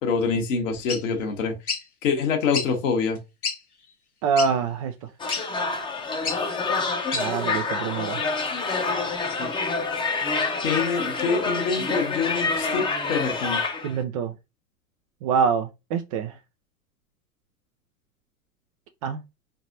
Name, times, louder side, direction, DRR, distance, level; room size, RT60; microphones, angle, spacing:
voice 1, 0.0-1.5 2.0-3.2 9.4-9.5 10.6-13.6, left 5 dB, 60° left, 1.3 m, -25 dB
sound 1, 0.9-1.0 1.7-1.8 2.5-2.7 3.2-3.3 3.4-3.6 4.4-4.5 5.3-5.4 6.2-6.4 7.1-7.3, left 5 dB, 80° left, 1.1 m, -28 dB
voice 2, 4.2-4.9 7.1-8.2 13.8-14.3 15.2-16.3 19.0-19.2, right 6 dB, 25° right, 0.3 m, -25 dB
sound 2, 5.2-14.0, left 4 dB, 10° left, 0.7 m, -27 dB
4.8 x 3.3 x 2.6 m
figure-of-eight pair, 85°, 43 cm